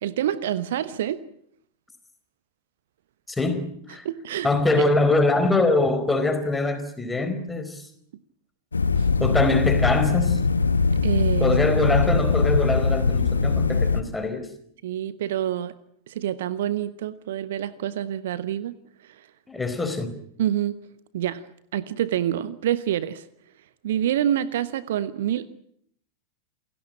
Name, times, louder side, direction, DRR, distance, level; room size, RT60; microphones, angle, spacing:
voice 1, 0.0-1.2 4.0-4.5 9.0-9.1 11.0-11.5 14.8-15.7 16.1-19.2 20.4-20.8 21.1-21.4 21.7-23.2 23.8-25.5, right 11 dB, 55° right, 16 dB, 1.1 m, -27 dB
voice 2, 3.3-4.0 4.4-7.9 9.2-10.4 11.4-14.5 19.5-20.2, left 2 dB, 10° left, 8 dB, 4.3 m, -23 dB
sound 1, 8.7-14.0, left 4 dB, 75° left, 1.3 m, -21 dB
28.5 x 17.0 x 8.7 m, 0.68 s
figure-of-eight pair, 90°, 0 cm